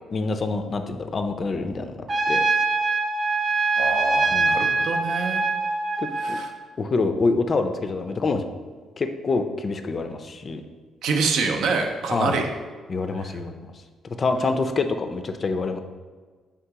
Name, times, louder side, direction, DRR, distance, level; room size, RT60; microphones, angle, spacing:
voice 1, 0.1-2.0 2.3-2.4 4.3-4.6 6.0-6.4 6.8-8.4 9.0-10.6 12.1-12.4 12.9-13.7 14.2-15.8, left 3 dB, 40° left, 7 dB, 0.4 m, -26 dB
Trumpet, 2.1-6.4, right 3 dB, 25° right, 0.5 m, -23 dB
voice 2, 3.8-5.4 6.2-6.5 11.0-12.5 13.2-13.3, right 4 dB, 75° right, 4 dB, 0.5 m, -26 dB
3.6 x 2.8 x 4.6 m, 1.5 s
cardioid pair, 90°, 0 cm